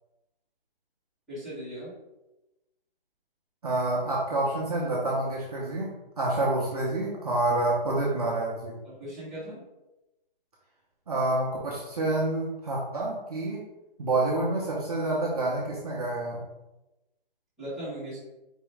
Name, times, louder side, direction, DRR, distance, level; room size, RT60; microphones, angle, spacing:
voice 1, 1.3-1.9 8.8-9.6 17.6-18.2, equal, ahead, -17 dB, 1.4 m, -38 dB
voice 2, 3.6-8.8 11.1-13.6 14.0-16.4, right 2 dB, 40° right, -4 dB, 0.8 m, -28 dB
4.4 x 2.9 x 3.4 m, 1.0 s
hypercardioid pair, 170°, 29 cm